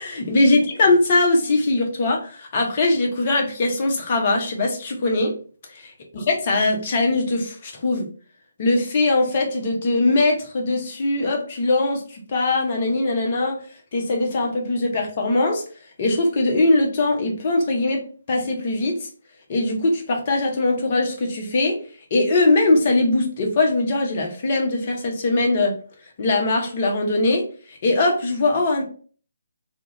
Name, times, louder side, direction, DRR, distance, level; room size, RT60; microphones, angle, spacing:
voice 1, 0.0-5.4 5.7-5.9 6.1-8.1 8.6-13.6 13.9-15.6 16.0-19.1 19.5-21.8 22.1-25.8 26.2-28.8, left 2 dB, 35° left, 1 dB, 0.6 m, -21 dB
2.3 x 2.1 x 2.8 m, 0.41 s
figure-of-eight pair, 145°, 0 cm